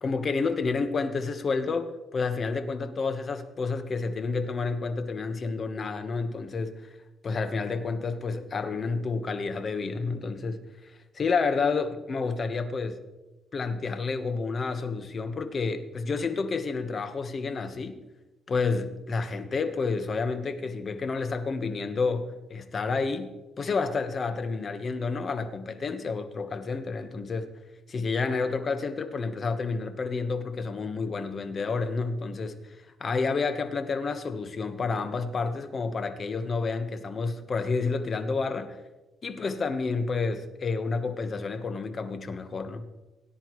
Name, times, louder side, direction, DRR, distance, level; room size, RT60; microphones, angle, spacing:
voice 1, 0.0-6.9 7.2-13.0 13.5-18.0 18.5-27.5 27.9-38.8 39.2-42.9, left 4 dB, 45° left, 9 dB, 1.3 m, -30 dB
18.0 x 10.0 x 3.2 m, 1.1 s
cardioid pair, 90°, 0 cm